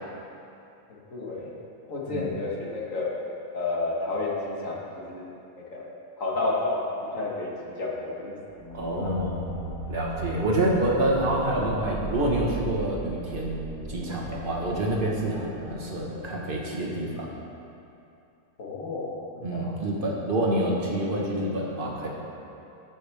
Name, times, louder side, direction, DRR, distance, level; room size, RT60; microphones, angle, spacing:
voice 1, 0.9-1.5 1.9-3.1 3.5-5.3 5.6-5.9 6.2-6.8 7.1-8.4 8.7-9.1 18.6-19.7, left 2 dB, 65° left, -4 dB, 2.1 m, -31 dB
sound 1, 8.5-17.1, equal, 75° right, 1.9 m, -37 dB
voice 2, 8.7-9.4 9.9-13.6 13.9-17.3 19.4-22.1, right 1 dB, 40° right, -3 dB, 1.6 m, -27 dB
15.0 x 7.5 x 3.5 m, 2.7 s
omnidirectional pair, 1.4 m